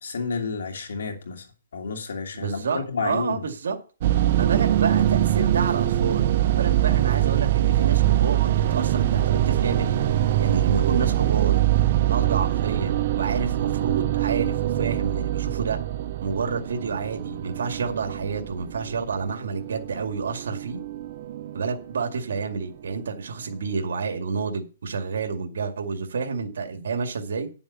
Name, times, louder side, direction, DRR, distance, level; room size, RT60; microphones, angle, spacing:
voice 1, 0.0-1.4 1.7-3.4, left 4 dB, 80° left, 2.8 m, -30 dB
voice 2, 2.3-3.8 4.3-10.0 10.4-11.7 12.1-15.8 16.2-20.8 21.5-27.5, right 5 dB, 75° right, 2.1 m, -29 dB
sound 1, 4.0-22.3, right 13 dB, 45° right, 0.8 m, -23 dB
10.5 x 7.1 x 5.8 m
hypercardioid pair, 160°, 0 cm